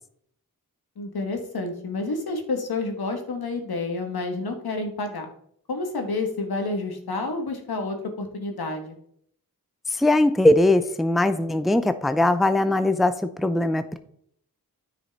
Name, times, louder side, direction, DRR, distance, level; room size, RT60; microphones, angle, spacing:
voice 1, 1.0-5.3 5.7-8.9, left 3 dB, 80° left, 4 dB, 1.5 m, -29 dB
voice 2, 9.9-14.0, left 1 dB, ahead, 11 dB, 0.5 m, -20 dB
9.7 x 5.1 x 4.1 m, 0.68 s
wide cardioid pair, 70°, 37 cm